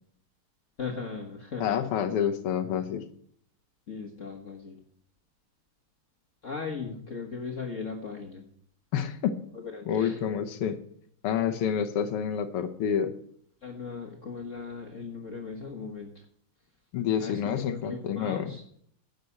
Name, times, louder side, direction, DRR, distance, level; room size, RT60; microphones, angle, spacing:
voice 1, 0.8-1.8 3.9-4.8 6.4-8.4 9.7-10.1 13.6-16.1 17.2-17.3 17.7-18.6, left 5 dB, 40° left, 0 dB, 1.5 m, -37 dB
voice 2, 1.6-3.0 6.9-7.0 8.9-9.4 9.9-10.8 11.2-13.1 16.9-18.5, left 8 dB, 90° left, 6 dB, 1.9 m, -28 dB
10.5 x 6.7 x 8.3 m, 0.64 s
omnidirectional pair, 2.4 m